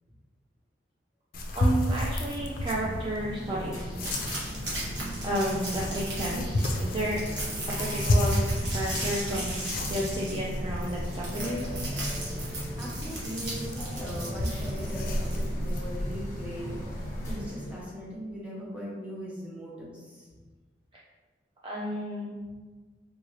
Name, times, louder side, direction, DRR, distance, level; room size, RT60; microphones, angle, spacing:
sound 1, 1.3-17.3, left 1 dB, 50° left, 0.4 m, -32 dB
voice 1, 1.5-4.1 5.2-7.2 7.8-11.7 21.6-22.4, right 1 dB, 25° right, -5 dB, 0.4 m, -32 dB
sound 2, 2.3-17.9, equal, 15° left, 1.1 m, -39 dB
sound 3, 4.0-15.7, right 2 dB, 80° right, 1.1 m, -38 dB
voice 2, 12.8-16.8 17.2-20.3, equal, 5° right, -6 dB, 0.8 m, -39 dB
3.5 x 2.6 x 3.2 m, 1.3 s
head